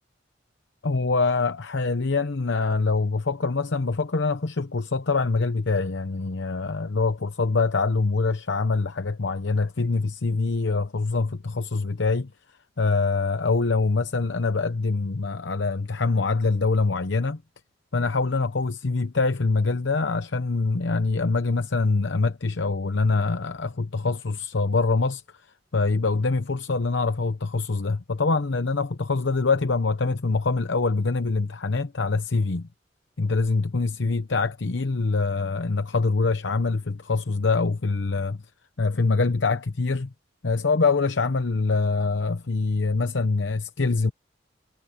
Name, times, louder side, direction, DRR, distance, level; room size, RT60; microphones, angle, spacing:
voice 1, 0.8-12.3 12.8-17.4 17.9-25.2 25.7-32.7 33.2-38.4 38.8-40.1 40.4-44.1, left 3 dB, 75° left, 0.8 m, -24 dB
head